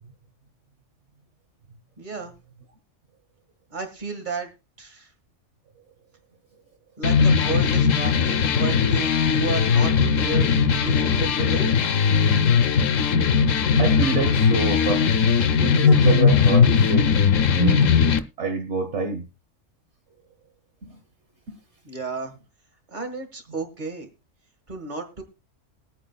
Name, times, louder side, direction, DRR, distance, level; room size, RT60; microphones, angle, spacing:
voice 1, 2.0-2.3 3.7-4.5 4.8-5.1 7.0-11.7 21.8-22.3 22.9-24.1 24.7-25.2, right 4 dB, 40° right, 1.8 m, -32 dB
sound 1, 7.0-18.2, left 6 dB, 85° left, 1.2 m, -19 dB
voice 2, 13.8-15.0 15.6-17.2 17.5-17.9 18.4-19.2 20.8-21.0 21.5-21.6, right 4 dB, 65° right, 1.4 m, -27 dB
21.0 x 8.8 x 2.3 m
omnidirectional pair, 1.3 m